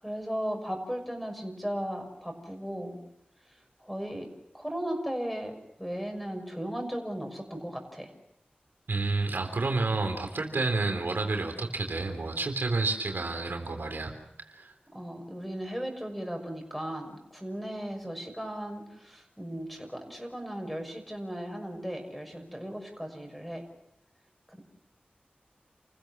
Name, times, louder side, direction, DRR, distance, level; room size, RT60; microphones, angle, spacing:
voice 1, 0.0-3.0 3.8-4.3 4.5-8.1 14.9-23.6 24.5-24.6, equal, ahead, 4 dB, 6.1 m, -36 dB
voice 2, 8.9-14.1 14.5-14.7, right 3 dB, 85° right, 4 dB, 3.6 m, -30 dB
29.5 x 15.5 x 7.4 m, 0.82 s
wide cardioid pair, 50°, 3 cm